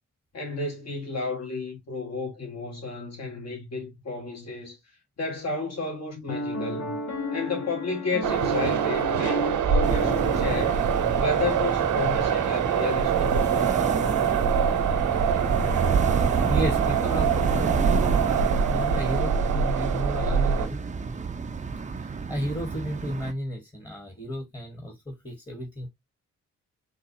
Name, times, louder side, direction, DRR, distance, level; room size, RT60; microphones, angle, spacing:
voice 1, 0.3-4.8 5.2-6.9 7.3-10.8 11.2-13.8, left 3 dB, 55° left, 1.8 m, -32 dB
Piano, 6.3-11.6, left 1 dB, 70° left, 0.9 m, -33 dB
sound 1, 8.2-20.7, right 7 dB, 70° right, 0.8 m, -24 dB
sound 2, 9.8-23.3, right 5 dB, 25° right, 0.5 m, -30 dB
voice 2, 16.5-18.4 18.7-20.8 22.0-25.9, equal, 15° left, 1.2 m, -33 dB
3.9 x 2.3 x 2.7 m
supercardioid pair, 50°, 32 cm